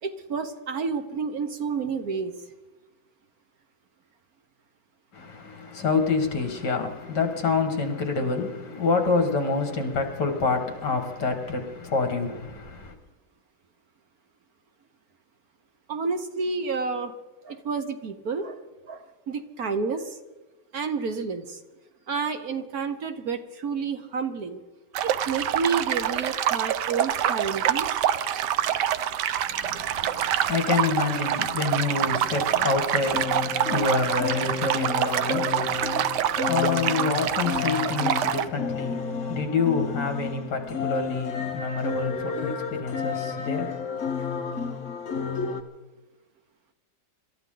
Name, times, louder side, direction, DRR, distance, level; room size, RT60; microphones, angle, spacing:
voice 1, 0.0-2.3 15.9-17.1 17.4-18.6 18.9-20.1 20.7-21.6 22.1-24.6 25.0-28.0, right 5 dB, 60° right, 1.4 m, -30 dB
voice 2, 5.1-12.9 29.5-43.8, left 4 dB, 65° left, 2.6 m, -27 dB
sound 1, 24.9-38.5, right 10 dB, 75° right, 1.2 m, -26 dB
sound 2, 33.0-45.6, left 6 dB, 45° left, 1.4 m, -31 dB
26.0 x 13.5 x 3.9 m
omnidirectional pair, 2.0 m